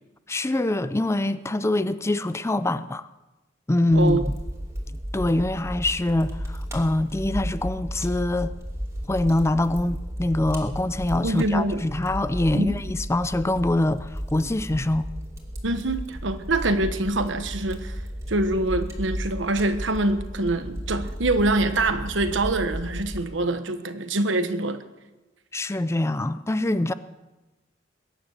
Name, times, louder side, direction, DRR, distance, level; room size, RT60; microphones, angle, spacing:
voice 1, 0.3-3.1 3.7-4.4 5.1-8.5 9.1-15.1 25.5-26.9, left 1 dB, 15° left, 0.5 m, -24 dB
Fire, 3.9-23.2, equal, 15° right, 2.8 m, -34 dB
voice 2, 11.2-11.8 12.5-12.7 15.6-18.0 18.3-24.8, right 2 dB, 80° right, 1.3 m, -25 dB
21.5 x 10.0 x 6.6 m
head